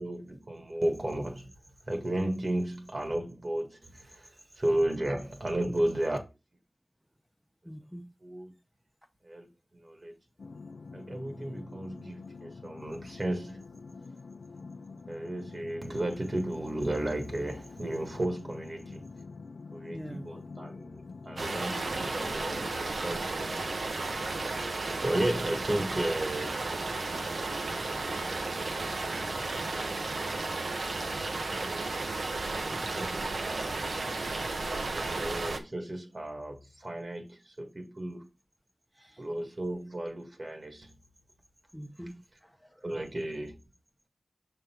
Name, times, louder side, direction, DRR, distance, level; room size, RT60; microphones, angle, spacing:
voice 1, 0.0-1.5 1.9-6.2 8.2-8.5 9.2-10.1 10.9-13.6 15.1-19.1 19.7-23.8 24.3-24.5 24.9-27.4 28.2-29.0 29.7-30.3 31.3-32.1 32.6-33.8 34.9-38.3 39.2-40.9 42.8-43.6, right 1 dB, 40° right, 1.6 m, -34 dB
voice 2, 7.6-8.1 19.9-20.4 38.9-39.3 41.7-42.9, equal, 5° right, 0.8 m, -46 dB
sound 1, 10.4-22.9, left 4 dB, 90° left, 0.5 m, -46 dB
sound 2, 21.4-35.6, right 3 dB, 80° right, 0.9 m, -33 dB
6.5 x 3.9 x 4.4 m
wide cardioid pair, 80°, 0 cm